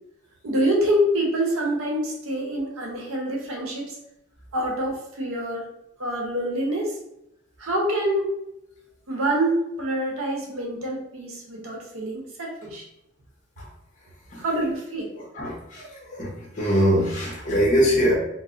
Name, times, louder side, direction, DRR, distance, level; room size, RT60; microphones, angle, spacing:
voice 1, 0.4-4.0 4.5-5.7 6.0-7.0 7.6-8.3 9.1-12.9 14.4-15.1 15.4-15.5, right 1 dB, 75° right, -1 dB, 0.8 m, -26 dB
voice 2, 15.1-18.2, equal, 35° left, -3 dB, 0.9 m, -23 dB
4.1 x 2.0 x 2.5 m, 0.84 s
head